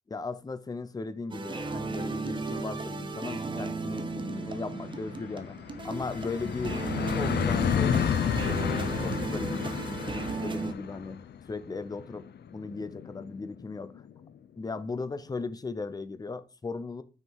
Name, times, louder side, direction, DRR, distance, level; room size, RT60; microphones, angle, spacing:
voice 1, 0.1-5.6 5.8-6.8 7.1-8.6 9.0-11.2 11.5-13.9 14.6-17.0, left 3 dB, 25° left, 0.4 m, -37 dB
sound 1, 1.3-10.7, right 4 dB, 30° right, 0.7 m, -35 dB
sound 2, 2.7-14.2, left 9 dB, 85° left, 0.5 m, -32 dB
6.4 x 4.5 x 4.6 m
wide cardioid pair, 175°, 17 cm